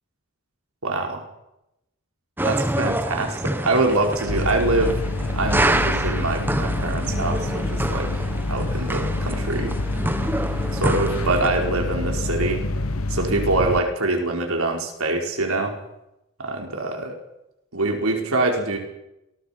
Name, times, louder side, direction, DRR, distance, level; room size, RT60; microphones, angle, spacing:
voice 1, 0.8-1.2 2.4-5.0 5.3-8.1 8.5-9.8 10.7-12.7 13.1-15.8 16.4-17.2 17.7-18.8, right 2 dB, 75° right, 3 dB, 4.8 m, -24 dB
sound 1, 2.4-11.5, right 1 dB, 10° right, 1.4 m, -27 dB
sound 2, 4.3-13.8, left 2 dB, 75° left, 1.3 m, -27 dB
27.0 x 21.0 x 5.9 m, 0.89 s
head